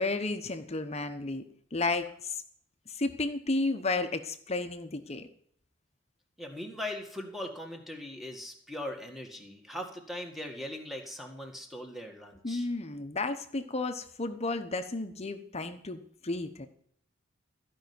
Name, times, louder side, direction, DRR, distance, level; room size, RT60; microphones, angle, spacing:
voice 1, 0.0-1.4 1.7-2.4 2.9-5.3 12.4-16.7, left 2 dB, 35° left, 8 dB, 1.0 m, -32 dB
voice 2, 6.4-12.7, left 1 dB, ahead, 2 dB, 1.9 m, -40 dB
14.5 x 5.7 x 9.6 m, 0.66 s
head